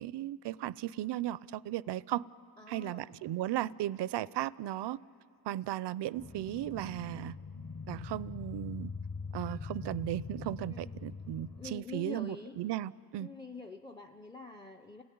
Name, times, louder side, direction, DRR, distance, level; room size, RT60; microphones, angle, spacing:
voice 1, 0.0-2.2 2.7-5.0 5.5-7.4 7.9-8.9 9.3-13.3, right 14 dB, 70° right, 21 dB, 0.5 m, -36 dB
voice 2, 2.6-3.2 10.7-11.1 11.6-12.6 13.2-15.0, left 4 dB, 10° left, 8 dB, 0.5 m, -46 dB
sound 1, 6.1-11.7, left 4 dB, 45° left, 1.7 m, -43 dB
29.0 x 17.0 x 9.4 m, 2.6 s
wide cardioid pair, 150°, 43 cm